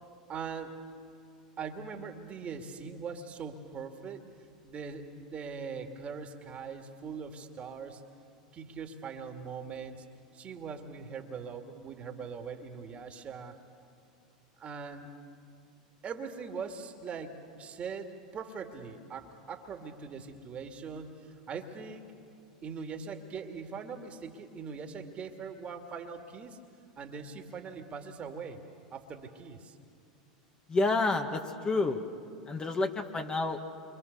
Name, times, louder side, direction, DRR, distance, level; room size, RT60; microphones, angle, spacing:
voice 1, 0.3-0.7 1.6-4.3 4.6-8.0 8.5-10.0 10.3-13.6 14.6-15.1 16.0-22.1 22.6-26.6 27.0-28.6 28.9-29.8, right 5 dB, 35° right, 5 dB, 2.4 m, -41 dB
voice 2, 30.7-32.0 32.5-33.6, left 3 dB, 20° left, 4 dB, 1.9 m, -29 dB
28.0 x 25.0 x 6.9 m, 2.4 s
hypercardioid pair, 85°, 4 cm